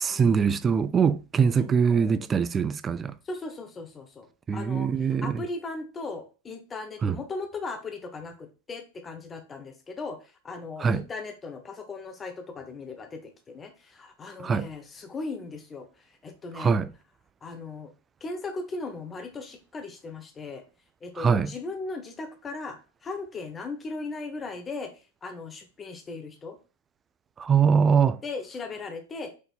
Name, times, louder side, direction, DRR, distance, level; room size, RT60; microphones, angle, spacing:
voice 1, 0.0-3.2 4.5-5.4 7.0-7.2 10.8-11.0 14.4-14.7 16.6-16.9 21.2-21.5 27.4-28.2, right 6 dB, 20° right, 0.3 m, -23 dB
voice 2, 3.2-4.9 5.2-16.7 17.4-17.9 18.2-20.6 21.0-24.9 25.2-26.6 28.2-29.3, left 3 dB, 20° left, 0.7 m, -38 dB
5.2 x 3.9 x 2.3 m
figure-of-eight pair, 90°, 0 cm